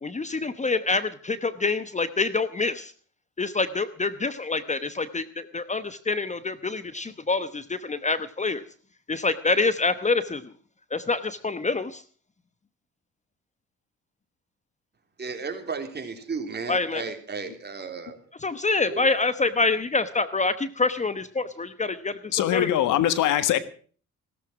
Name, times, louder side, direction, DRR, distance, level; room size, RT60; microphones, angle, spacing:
voice 1, 0.0-2.9 3.4-8.6 9.1-10.4 10.9-12.0 16.7-17.0 18.4-22.8, left 3 dB, 25° left, 13 dB, 1.0 m, -26 dB
voice 2, 15.2-18.2 18.8-19.1, right 4 dB, 35° right, 5 dB, 3.4 m, -34 dB
voice 3, 22.3-23.6, left 11 dB, 90° left, 13 dB, 1.5 m, -22 dB
16.5 x 13.5 x 6.1 m, 0.44 s
cardioid pair, 90°, 30 cm